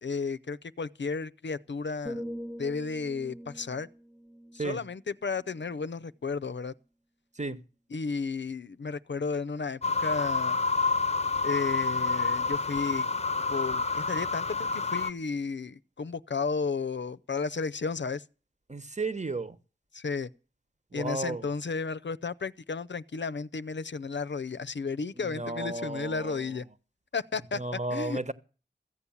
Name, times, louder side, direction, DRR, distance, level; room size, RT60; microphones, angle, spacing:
voice 1, 0.0-2.2 2.6-3.9 4.5-6.7 7.9-10.6 11.4-13.1 13.5-18.2 19.9-20.3 20.9-26.6 27.1-27.6 27.9-28.2, left 4 dB, 80° left, 0.6 m, -33 dB
sound 1, 2.1-6.0 6.5-6.7, equal, 5° left, 0.7 m, -43 dB
sound 2, 9.8-15.1, left 4 dB, 35° left, 0.6 m, -28 dB
voice 2, 18.7-19.6 20.9-21.5 25.2-26.6 27.5-28.3, right 2 dB, 40° right, 1.1 m, -33 dB
14.5 x 8.4 x 7.2 m
wide cardioid pair, 55°, 19 cm